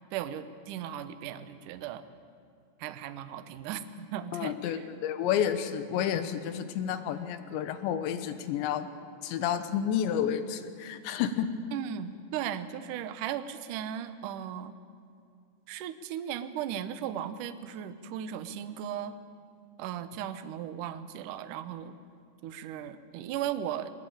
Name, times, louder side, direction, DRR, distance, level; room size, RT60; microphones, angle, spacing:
voice 1, 0.1-2.0 2.8-4.8 11.7-14.7 15.7-19.1 19.8-22.0 22.4-23.9, right 10 dB, 90° right, 10 dB, 1.8 m, -37 dB
voice 2, 4.3-8.9 9.2-11.5, left 9 dB, 85° left, 10 dB, 3.3 m, -30 dB
22.0 x 20.5 x 8.9 m, 2.4 s
omnidirectional pair, 5.1 m